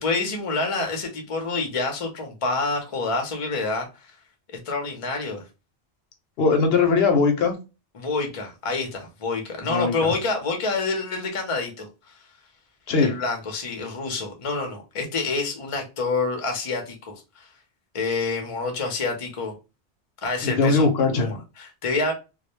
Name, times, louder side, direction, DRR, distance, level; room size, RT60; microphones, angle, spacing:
voice 1, 0.0-3.9 4.6-5.4 7.9-12.2 13.0-17.5 17.9-19.5 20.2-20.9 21.1-22.1, left 3 dB, 40° left, 0.6 m, -27 dB
voice 2, 6.4-7.6 9.6-10.2 12.9-13.1 20.4-21.4, left 4 dB, 75° left, 0.8 m, -20 dB
2.2 x 2.1 x 2.9 m
omnidirectional pair, 1.1 m